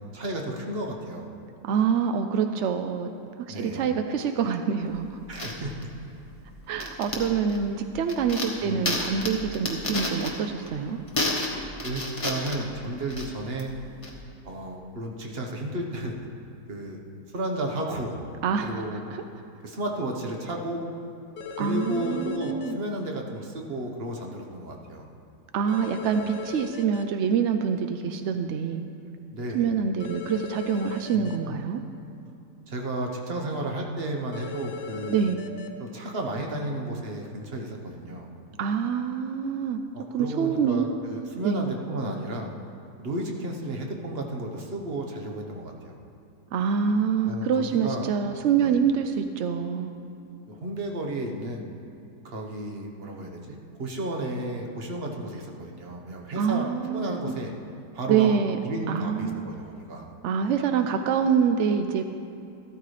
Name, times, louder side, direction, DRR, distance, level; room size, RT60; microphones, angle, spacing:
voice 1, 0.1-1.3 3.5-3.8 5.3-5.7 8.6-9.0 11.8-13.7 14.4-16.3 16.7-17.0 17.3-18.2 18.6-19.0 19.6-20.9 21.5-25.1 29.3-29.7 31.1-31.6 32.7-35.2 35.8-38.3 39.9-42.5 43.0-46.0 47.2-48.1 48.6-48.8 50.5-51.6 52.2-57.5 57.9-58.3 58.6-60.1, right 1 dB, 40° right, 1 dB, 1.2 m, -33 dB
voice 2, 1.6-3.1 3.5-5.2 6.7-11.0 18.4-18.7 21.6-22.8 25.5-28.8 29.5-31.8 35.1-35.4 38.6-39.8 40.1-40.9 41.4-41.6 46.5-49.9 56.4-57.3 58.1-58.6 58.9-59.5 60.2-62.0, right 7 dB, 75° right, 7 dB, 0.6 m, -26 dB
sound 1, 4.8-14.2, left 2 dB, 20° left, 1.3 m, -32 dB
sound 2, 21.4-22.7 25.7-27.0 30.0-31.4 34.3-35.7, left 5 dB, 85° left, 1.4 m, -37 dB
14.0 x 13.0 x 3.3 m, 2.7 s
omnidirectional pair, 1.8 m